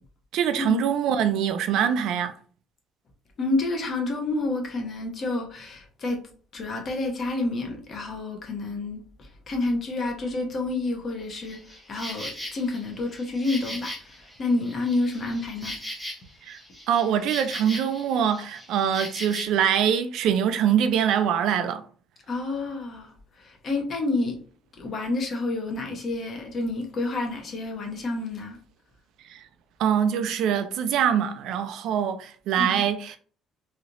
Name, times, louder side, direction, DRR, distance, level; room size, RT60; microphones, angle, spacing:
voice 1, 0.3-2.3 16.4-16.6 16.9-21.8 29.3-29.4 29.8-33.2, right 8 dB, 60° right, 0.3 m, -24 dB
voice 2, 3.4-6.3 6.5-13.9 14.4-15.8 22.3-24.4 24.8-28.6 32.6-32.8, left 2 dB, 35° left, 0.8 m, -29 dB
Insect, 11.4-19.4, left 1 dB, 5° left, 0.9 m, -39 dB
3.1 x 2.7 x 2.5 m
cardioid pair, 160°, 0 cm